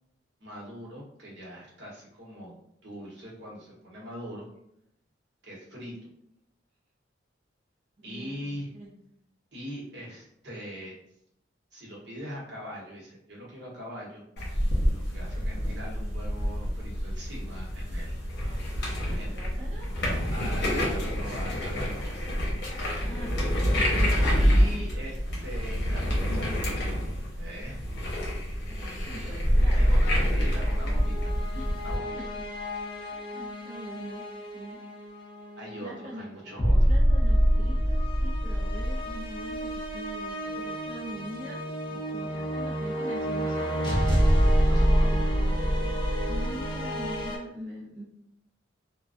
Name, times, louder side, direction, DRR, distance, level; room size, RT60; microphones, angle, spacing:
voice 1, 0.4-2.5 2.8-4.5 5.4-6.1 8.0-8.7 9.5-10.9 11.7-14.2 15.1-18.2 19.1-19.4 20.3-22.3 23.4-23.5 24.4-25.2 25.4-27.8 29.7-31.3 31.8-32.2 35.6-36.9 44.7-45.3, equal, 65° right, -4 dB, 0.9 m, -41 dB
voice 2, 8.0-8.9 18.4-18.6 19.0-19.9 23.1-23.9 28.6-29.8 31.5-31.8 32.2-32.4 33.1-34.3 34.5-34.8 35.8-36.3 36.9-44.7 45.0-48.0, equal, 40° right, -7 dB, 0.5 m, -43 dB
sound 1, 14.4-32.0, equal, 60° left, 0.8 m, -28 dB
sound 2, 29.4-47.4, equal, 25° left, 0.4 m, -26 dB
2.4 x 2.2 x 2.4 m, 0.76 s
head